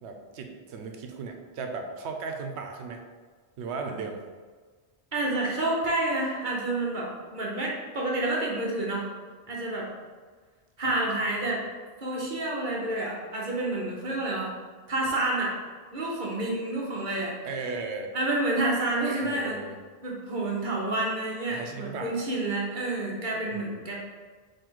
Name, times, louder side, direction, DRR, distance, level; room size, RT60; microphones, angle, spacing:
voice 1, 0.0-3.0 3.6-4.3 10.8-11.0 17.4-18.1 19.2-19.8 21.5-22.2 23.5-23.6, right 4 dB, 90° right, 4 dB, 0.9 m, -36 dB
voice 2, 5.1-9.0 9.5-9.9 10.8-11.6 12.0-14.5 14.9-15.5 15.9-17.3 18.1-19.6 20.0-24.0, right 2 dB, 50° right, -3 dB, 0.9 m, -29 dB
3.8 x 2.7 x 4.5 m, 1.5 s
omnidirectional pair, 1.1 m